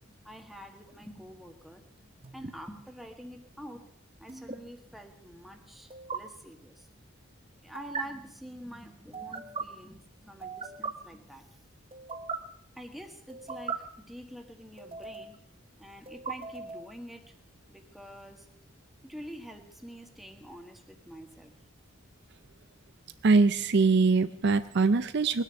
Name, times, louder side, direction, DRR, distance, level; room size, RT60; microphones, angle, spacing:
voice 1, 0.2-3.9 4.2-6.9 7.6-11.5 12.7-15.4 15.8-17.4 17.7-18.5 19.0-21.5, equal, ahead, 3 dB, 1.6 m, -47 dB
sound 1, 2.2-2.5 4.3-4.6 5.9-6.2 7.7-8.0 9.1-9.6 10.4-10.9 11.9-12.4 13.3-13.8 14.8-15.4 16.1-16.9, right 5 dB, 30° right, 0.9 m, -38 dB
voice 2, 23.2-25.4, right 4 dB, 55° right, 12 dB, 0.5 m, -23 dB
20.5 x 9.8 x 6.9 m, 0.69 s
head